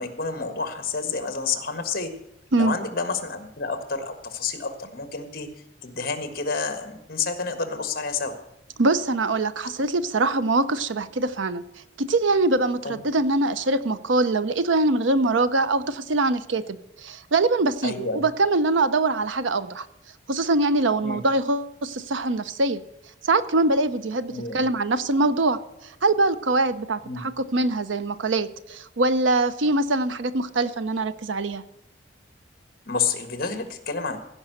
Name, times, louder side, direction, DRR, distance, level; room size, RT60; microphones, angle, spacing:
voice 1, 0.0-2.1 2.6-5.5 5.8-8.3 12.8-13.0 17.8-18.2 21.0-21.2 24.3-24.7 27.0-27.2 32.9-34.2, left 4 dB, 50° left, 8 dB, 1.6 m, -29 dB
voice 2, 8.8-11.6 12.0-19.9 20.3-22.8 23.2-31.6, right 2 dB, 80° right, 13 dB, 0.7 m, -23 dB
16.0 x 5.5 x 7.8 m, 0.86 s
head